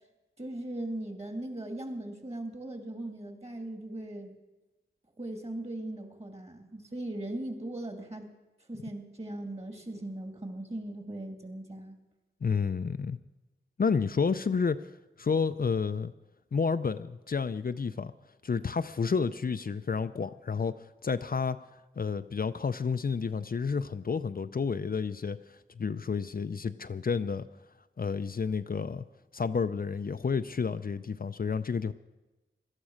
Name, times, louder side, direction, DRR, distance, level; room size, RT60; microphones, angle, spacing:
voice 1, 0.4-4.3 5.2-8.3 8.7-12.0, right 1 dB, 30° right, 5 dB, 2.9 m, -39 dB
voice 2, 12.4-13.2 13.8-14.9 15.2-16.1 16.5-18.1 18.4-21.6 22.0-27.5 28.0-29.1 29.3-31.9, left 5 dB, 50° left, 10 dB, 0.5 m, -30 dB
17.5 x 12.5 x 6.4 m, 1.1 s
wide cardioid pair, 65°, 19 cm